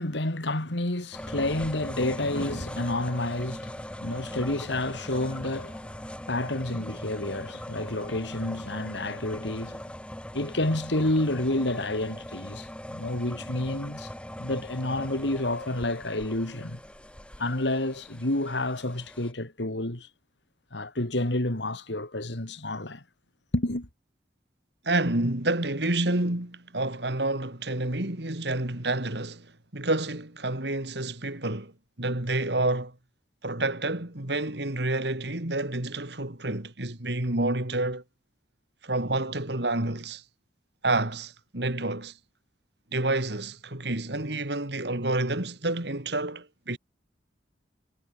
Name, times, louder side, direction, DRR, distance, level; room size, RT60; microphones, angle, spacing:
voice 1, 0.0-9.8 10.3-14.1 14.4-16.8 17.4-20.1 20.7-23.0 23.5-23.9, left 1 dB, 75° left, 2.8 m, -29 dB
sound 1, 1.1-19.3, equal, 5° left, 2.7 m, -40 dB
voice 2, 24.8-29.5 29.7-31.7 32.0-32.9 33.4-38.0 38.8-40.2 40.8-42.1 42.9-46.8, right 2 dB, 65° right, 3.0 m, -29 dB
head